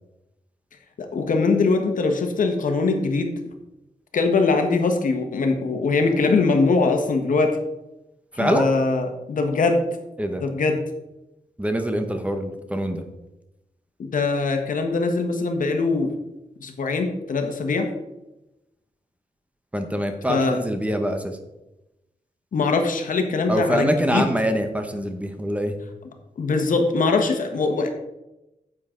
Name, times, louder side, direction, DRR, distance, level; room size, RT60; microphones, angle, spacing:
voice 1, 1.0-3.4 4.1-7.6 8.3-9.9 10.4-10.8 14.0-16.1 16.6-17.9 20.3-20.6 22.5-24.3 26.4-27.9, left 3 dB, 75° left, 5 dB, 1.3 m, -22 dB
voice 2, 8.4-8.7 10.2-10.4 11.6-13.0 19.7-21.4 23.5-25.8, equal, 10° right, 6 dB, 1.0 m, -24 dB
9.6 x 7.6 x 3.8 m, 0.95 s
wide cardioid pair, 130°, 14 cm